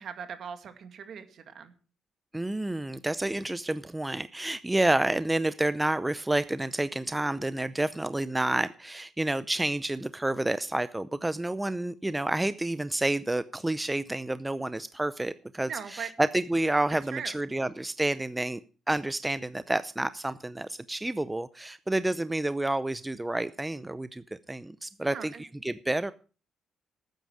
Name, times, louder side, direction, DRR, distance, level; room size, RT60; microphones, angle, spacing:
voice 1, 0.0-1.7 15.7-16.1 17.1-17.3 25.0-25.4, right 7 dB, 60° right, 8 dB, 2.1 m, -39 dB
voice 2, 2.3-18.6 18.9-26.1, right 1 dB, 10° right, 14 dB, 0.6 m, -29 dB
13.0 x 9.3 x 6.2 m, 0.38 s
cardioid pair, 90°, 0 cm